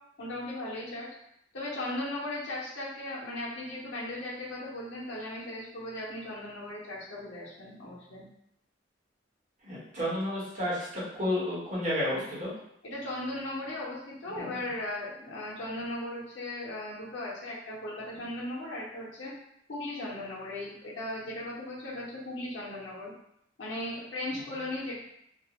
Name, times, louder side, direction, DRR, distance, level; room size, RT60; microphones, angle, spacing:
voice 1, 0.2-1.1 1.5-8.2 12.8-19.3 19.7-23.1 23.6-25.0, left 1 dB, 90° left, -6 dB, 0.7 m, -37 dB
voice 2, 9.6-12.5 14.3-14.5, left 1 dB, 45° right, -7 dB, 1.0 m, -31 dB
2.4 x 2.0 x 2.9 m, 0.75 s
head